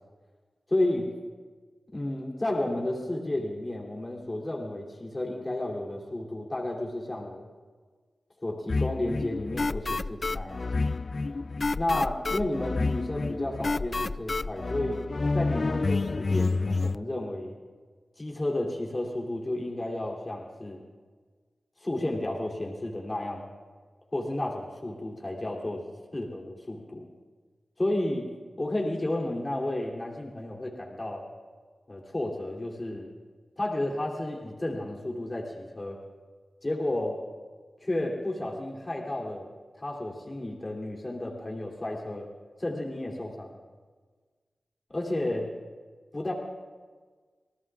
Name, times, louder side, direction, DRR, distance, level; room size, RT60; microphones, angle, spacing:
voice 1, 0.7-1.1 1.9-7.5 8.4-10.7 11.8-15.0 15.3-17.6 18.2-20.8 21.8-23.4 24.1-25.8 26.1-27.1 27.8-28.3 28.6-31.3 31.9-33.1 33.6-36.0 36.6-37.2 37.8-39.5 39.8-42.3 42.6-43.6 44.9-45.5 46.1-46.3, left 1 dB, 35° left, -2 dB, 3.1 m, -32 dB
sound 1, 8.7-17.0, left 3 dB, 50° left, 0.3 m, -29 dB
26.5 x 18.5 x 2.5 m, 1.5 s
cardioid pair, 50°, 0 cm